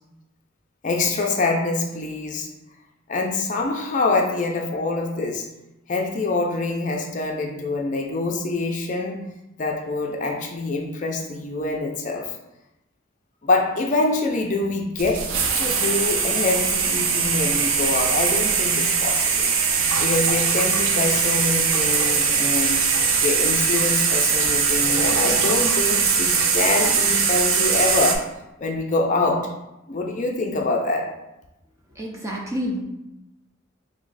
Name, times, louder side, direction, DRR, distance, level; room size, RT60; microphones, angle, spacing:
voice 1, 0.8-2.5 3.1-5.5 5.9-9.3 9.6-12.3 13.4-19.5 20.0-22.9 23.2-28.3 28.6-29.6 29.9-31.1, left 3 dB, 40° left, 1 dB, 0.5 m, -25 dB
sound 1, 15.0-28.2, right 5 dB, 75° right, 0.5 m, -21 dB
voice 2, 31.9-32.8, equal, 15° right, -2 dB, 0.5 m, -28 dB
3.2 x 3.1 x 3.9 m, 0.92 s
head